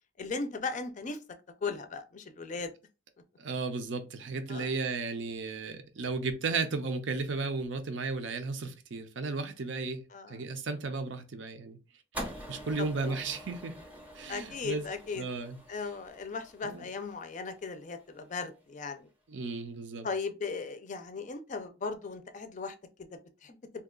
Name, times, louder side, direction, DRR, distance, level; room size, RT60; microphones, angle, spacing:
voice 1, 0.2-1.2 1.6-2.7 4.5-4.7 10.1-10.4 12.8-13.1 14.3-15.2 15.7-19.1 20.0-22.7 23.4-23.6, left 4 dB, 40° left, 0.4 m, -37 dB
voice 2, 3.4-10.0 10.3-11.8 12.5-13.7 14.2-14.8 15.1-15.6 16.6-16.9 19.3-20.1, right 4 dB, 70° right, 0.5 m, -34 dB
sound 1, 12.1-18.5, equal, 10° right, 0.6 m, -46 dB
2.8 x 2.3 x 3.6 m
head